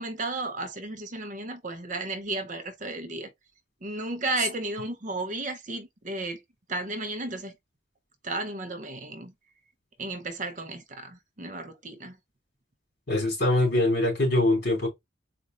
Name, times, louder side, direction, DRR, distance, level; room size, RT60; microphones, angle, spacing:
voice 1, 0.0-3.3 3.8-6.4 6.7-7.5 8.2-9.3 10.0-12.2, right 2 dB, 40° right, 0.7 m, -33 dB
voice 2, 13.1-14.9, left 2 dB, 55° left, 2.8 m, -23 dB
4.2 x 2.5 x 3.7 m
head